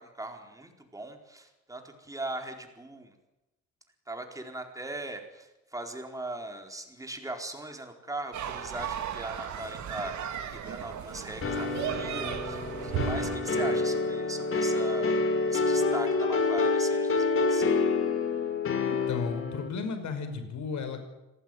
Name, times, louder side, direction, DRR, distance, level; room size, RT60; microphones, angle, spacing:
voice 1, 0.0-3.1 4.1-15.2 15.5-17.8, right 2 dB, 10° right, 4 dB, 4.4 m, -39 dB
sound 1, 8.3-13.4, right 8 dB, 75° right, 3.2 m, -35 dB
sound 2, 11.4-19.7, left 3 dB, 45° left, 3.9 m, -27 dB
voice 2, 18.9-21.0, left 5 dB, 75° left, 8 dB, 5.5 m, -34 dB
26.5 x 19.0 x 9.3 m, 0.99 s
cardioid pair, 135°, 29 cm